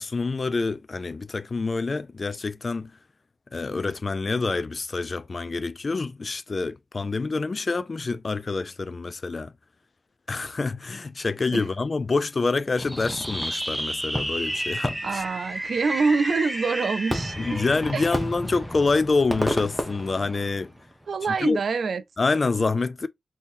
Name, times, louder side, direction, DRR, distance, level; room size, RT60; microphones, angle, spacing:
voice 1, 0.0-2.9 3.5-9.5 10.3-15.2 17.4-20.7 21.3-21.6 22.2-23.1, left 3 dB, 40° left, 0.3 m, -27 dB
Fireworks, 12.8-20.9, equal, 5° right, 0.7 m, -31 dB
voice 2, 15.0-17.6 17.9-18.0 21.1-22.0, right 4 dB, 75° right, 0.3 m, -25 dB
3.7 x 2.8 x 2.5 m
wide cardioid pair, 150°, 0 cm